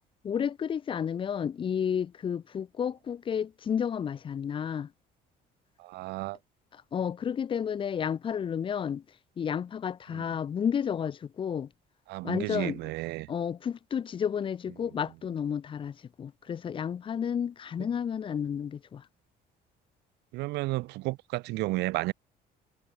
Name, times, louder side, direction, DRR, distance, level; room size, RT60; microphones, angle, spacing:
voice 1, 0.2-4.9 6.9-9.0 9.4-11.7 12.2-12.8 13.3-19.0, left 8 dB, 30° left, 0.4 m, -31 dB
voice 2, 5.8-6.4 10.1-10.3 12.1-13.3 20.3-22.1, right 21 dB, 85° right, 0.6 m, -32 dB
cardioid pair, 110°, 17 cm